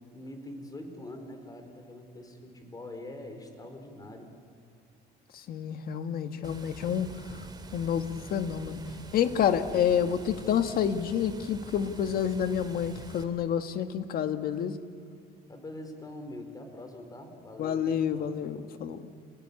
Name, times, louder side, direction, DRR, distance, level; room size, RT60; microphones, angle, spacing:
voice 1, 0.1-4.3 8.7-8.8 15.5-18.3, left 1 dB, 20° left, 6 dB, 4.5 m, -44 dB
voice 2, 5.5-7.1 7.7-8.8 9.1-14.8 17.6-19.1, left 8 dB, 60° left, 8 dB, 1.6 m, -28 dB
Water, 6.4-13.2, right 4 dB, 25° right, 2.9 m, -46 dB
28.5 x 19.5 x 8.7 m, 2.5 s
cardioid pair, 110°, 17 cm